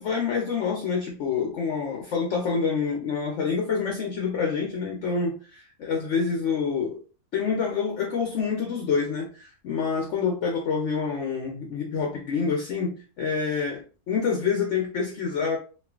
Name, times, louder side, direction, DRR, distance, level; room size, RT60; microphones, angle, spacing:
voice 1, 0.0-7.0 7.3-15.6, left 5 dB, 65° left, 0 dB, 0.7 m, -27 dB
3.1 x 2.4 x 2.3 m, 0.36 s
omnidirectional pair, 1.6 m